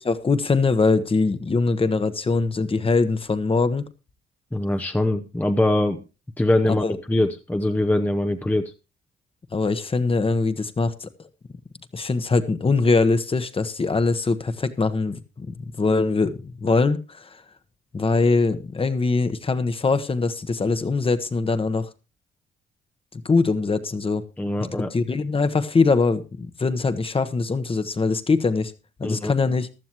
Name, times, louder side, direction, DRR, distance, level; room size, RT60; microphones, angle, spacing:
voice 1, 0.0-3.8 6.8-7.0 9.5-11.1 11.9-17.4 17.9-21.9 23.1-24.2 24.9-28.7 29.0-29.7, left 4 dB, 30° left, 11 dB, 1.1 m, -22 dB
voice 2, 4.5-6.0 6.4-8.7 24.4-24.9 29.0-29.3, left 1 dB, 10° left, 7 dB, 0.8 m, -23 dB
15.0 x 12.0 x 3.0 m, 0.29 s
cardioid pair, 90°, 20 cm